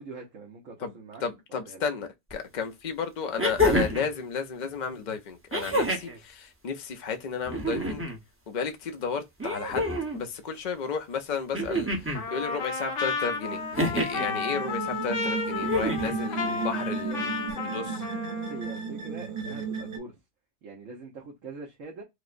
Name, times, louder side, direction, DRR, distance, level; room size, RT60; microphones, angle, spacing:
voice 1, 0.0-1.2 1.5-1.8 16.3-17.3 18.5-20.1 20.6-22.0, right 3 dB, 80° right, 1.3 m, -43 dB
voice 2, 1.2-8.0 8.5-13.6 13.9-18.0, left 6 dB, 45° left, 0.6 m, -33 dB
sound 1, 2.3-2.4 3.4-4.1 5.5-6.2 7.4-8.2 9.4-10.2 11.5-12.2 13.7-14.3 15.6-16.2 17.5-17.6, equal, 15° right, 0.7 m, -27 dB
Trumpet, 12.1-18.8, left 4 dB, 75° left, 1.1 m, -33 dB
sound 2, 13.4-20.0, right 5 dB, 50° right, 0.9 m, -34 dB
4.7 x 2.0 x 2.5 m
omnidirectional pair, 1.3 m